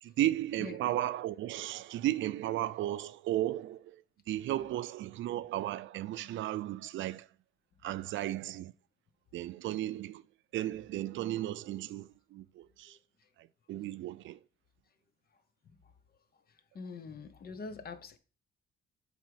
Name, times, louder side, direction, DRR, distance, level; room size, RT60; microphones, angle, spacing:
voice 1, 0.0-7.3 7.8-8.7 9.3-10.2 10.5-13.0 13.4-14.4, right 14 dB, 75° right, 0.5 m, -35 dB
voice 2, 16.7-18.2, left 4 dB, 50° left, 0.9 m, -43 dB
7.4 x 3.7 x 4.7 m
cardioid pair, 90°, 20 cm